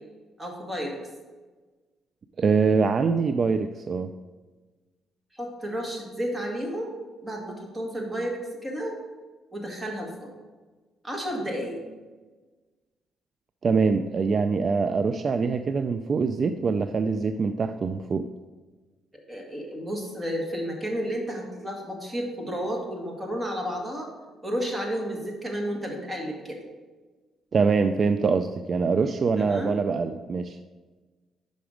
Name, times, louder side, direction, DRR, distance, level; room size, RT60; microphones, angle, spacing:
voice 1, 0.4-1.0 5.3-9.0 9.5-10.3 11.0-11.8 19.3-24.1 24.4-26.6 29.4-29.8, equal, 15° right, 0 dB, 1.8 m, -32 dB
voice 2, 2.4-4.1 13.6-18.2 27.5-30.6, right 5 dB, 45° right, 9 dB, 0.3 m, -24 dB
5.8 x 5.2 x 5.0 m, 1.3 s
cardioid pair, 90°, 0 cm